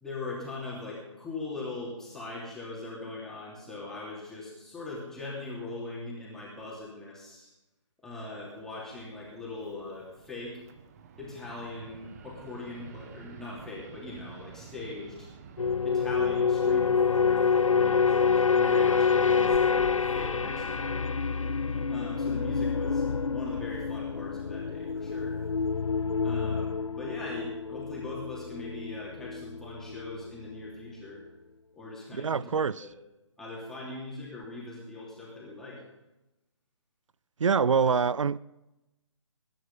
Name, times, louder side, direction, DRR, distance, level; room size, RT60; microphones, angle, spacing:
voice 1, 0.0-7.5 8.0-10.6 11.2-15.3 15.8-21.0 21.9-25.4 26.2-31.2 31.8-32.5 32.8-32.9 33.4-35.8, left 2 dB, 5° left, 3.0 m, -41 dB
Fixed-wing aircraft airplane, 8.1-25.9, right 6 dB, 30° right, 1.1 m, -52 dB
sound 1, 15.6-30.2 30.5-30.8, left 5 dB, 85° left, 0.5 m, -27 dB
voice 2, 32.1-32.9 37.4-38.4, right 6 dB, 75° right, 0.4 m, -25 dB
21.5 x 10.5 x 5.5 m
figure-of-eight pair, 145°, 16 cm